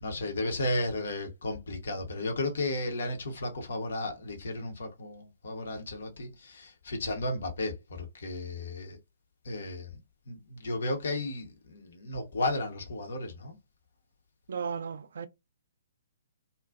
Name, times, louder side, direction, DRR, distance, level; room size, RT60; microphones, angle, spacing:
voice 1, 0.0-9.0 9.4-9.9 10.3-13.6, left 2 dB, 55° left, 0.8 m, -34 dB
voice 2, 14.5-15.3, right 6 dB, 55° right, 0.3 m, -35 dB
2.5 x 2.3 x 2.3 m
figure-of-eight pair, 125°, 0 cm